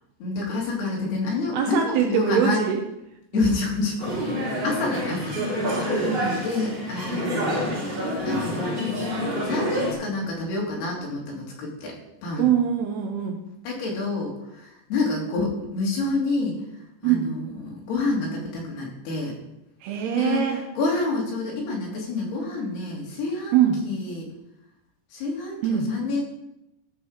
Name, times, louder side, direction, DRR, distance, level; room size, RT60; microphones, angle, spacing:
voice 1, 0.2-2.6 3.3-5.9 6.4-7.8 8.2-8.7 9.4-11.9 12.2-12.5 13.6-16.6 17.0-19.4 20.1-23.6 23.8-24.3 25.1-26.2, left 3 dB, 65° left, -2 dB, 4.2 m, -28 dB
voice 2, 1.5-2.8 3.3-3.6 5.7-6.4 12.4-13.5 17.0-17.3 19.8-20.6 23.5-23.8 25.6-25.9, right 9 dB, 80° right, 4 dB, 2.4 m, -23 dB
sound 1, 4.0-9.9, equal, 35° right, 2.0 m, -27 dB
14.0 x 4.8 x 6.4 m, 0.87 s
omnidirectional pair, 5.3 m